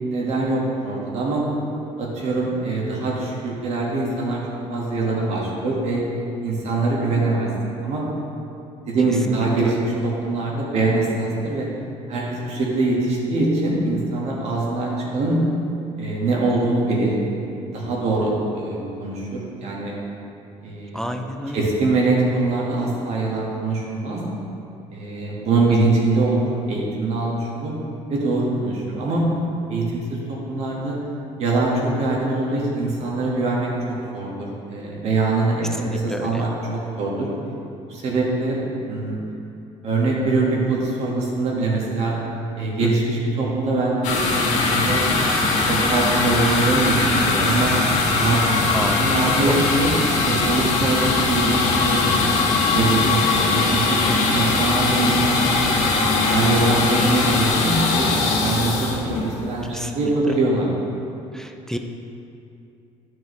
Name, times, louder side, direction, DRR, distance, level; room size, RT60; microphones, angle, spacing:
voice 1, 0.1-1.4 2.0-4.4 4.7-6.0 6.4-7.5 7.8-8.0 8.9-11.7 12.1-15.4 16.0-17.2 17.7-20.0 20.6-21.2 21.5-24.2 24.9-27.7 28.1-29.2 29.7-31.0 31.4-37.3 37.9-38.6 38.9-39.2 39.8-42.2 42.5-45.0 45.6-47.7 48.2-48.6 49.0-49.9 50.2-54.0 54.3-55.7 56.3-58.1 58.4-60.7, right 2 dB, 55° right, -3 dB, 1.7 m, -23 dB
voice 2, 20.9-21.7 35.9-36.4 42.8-43.0 48.7-49.6 54.1-54.3 59.7-59.9 61.3-61.8, equal, 5° left, 5 dB, 0.4 m, -29 dB
sound 1, 44.0-59.7, left 3 dB, 70° left, 1.4 m, -20 dB
10.5 x 4.7 x 3.2 m, 2.6 s
cardioid pair, 115°, 13 cm